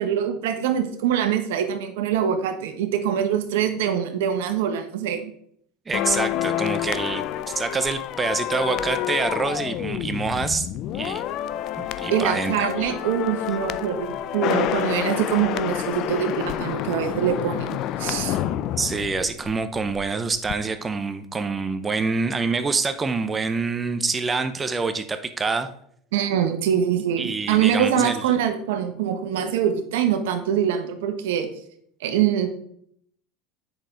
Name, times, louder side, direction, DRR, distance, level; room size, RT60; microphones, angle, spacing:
voice 1, 0.0-5.3 12.1-18.4 26.1-31.5 32.0-32.5, right 9 dB, 80° right, 7 dB, 1.2 m, -24 dB
sound 1, 5.9-20.1 20.3-20.5, left 12 dB, 55° left, 0.5 m, -28 dB
voice 2, 5.9-7.2 7.5-10.7 10.9-11.2 11.8-12.9 18.8-25.7 27.2-28.2, right 4 dB, 20° right, 10 dB, 0.7 m, -26 dB
8.0 x 6.2 x 3.9 m, 0.67 s
supercardioid pair, 105°, 0 cm